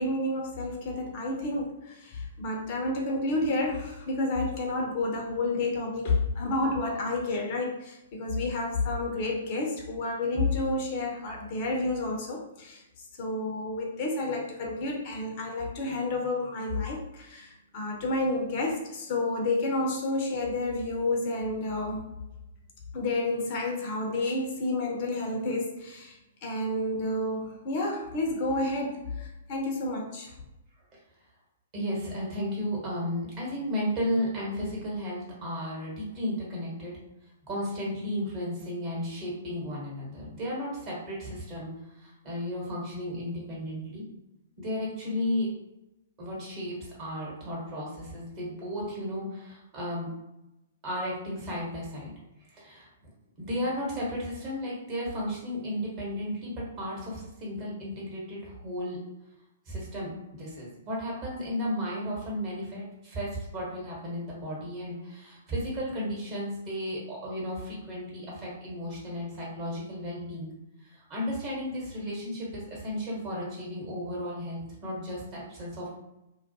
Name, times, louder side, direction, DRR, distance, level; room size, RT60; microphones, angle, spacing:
voice 1, 0.0-12.8 13.2-22.0 22.9-30.3, left 2 dB, 40° left, 0 dB, 0.5 m, -30 dB
voice 2, 31.7-36.9 37.5-41.7 41.9-44.0 44.6-45.5 46.2-50.1 50.8-52.1 52.5-53.1 53.4-59.0 59.7-70.5 70.8-75.9, equal, 30° right, -5 dB, 1.1 m, -34 dB
2.3 x 2.1 x 2.7 m, 0.94 s
figure-of-eight pair, 115°, 0 cm